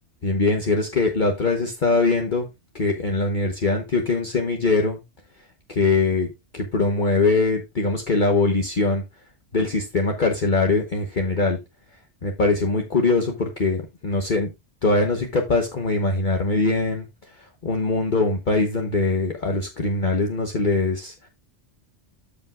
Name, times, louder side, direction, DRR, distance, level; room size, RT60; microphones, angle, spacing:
voice 1, 0.2-2.5 2.7-5.0 5.7-9.0 9.5-11.6 12.2-14.5 14.8-21.3, left 3 dB, 45° left, 3 dB, 1.2 m, -22 dB
13.5 x 5.3 x 2.4 m, 0.23 s
omnidirectional pair, 1.2 m